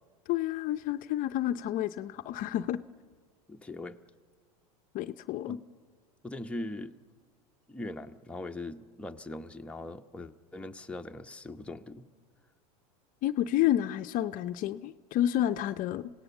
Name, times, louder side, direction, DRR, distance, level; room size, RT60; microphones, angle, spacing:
voice 1, 0.3-2.8 4.9-5.6 13.2-16.1, left 12 dB, 45° left, 12 dB, 0.6 m, -30 dB
voice 2, 3.5-4.0 5.5-5.6 6.2-7.0 7.7-12.1, left 2 dB, 5° left, 4 dB, 0.9 m, -40 dB
26.5 x 17.5 x 7.1 m, 1.5 s
hypercardioid pair, 100°, 19 cm